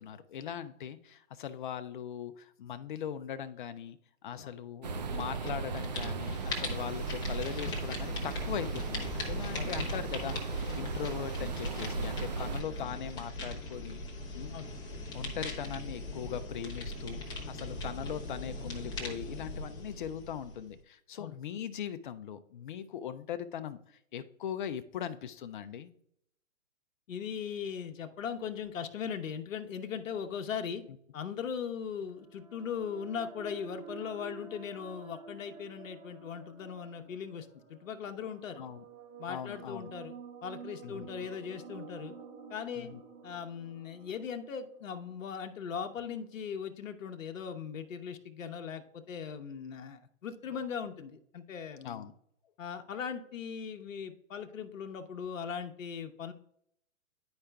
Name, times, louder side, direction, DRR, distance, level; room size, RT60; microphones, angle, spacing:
voice 1, 0.0-4.0 4.2-14.0 14.3-14.6 15.1-17.2 17.5-23.8 24.1-25.9 38.6-38.8 39.3-39.9 40.8-41.1 42.8-43.0 51.8-52.1, left 9 dB, 40° left, 10 dB, 0.4 m, -40 dB
sound 1, 4.8-12.6, right 4 dB, 35° right, 0.4 m, -36 dB
sound 2, 5.1-5.5 5.8-20.8, left 1 dB, 10° left, 0.8 m, -40 dB
voice 2, 27.1-30.8 31.1-38.6 39.2-42.1 42.5-42.9 43.2-52.0 52.6-56.3, left 7 dB, 70° left, 7 dB, 0.8 m, -39 dB
sound 3, 32.0-45.7, right 6 dB, 80° right, 2.0 m, -50 dB
10.5 x 4.8 x 2.2 m, 0.71 s
hypercardioid pair, 140°, 40 cm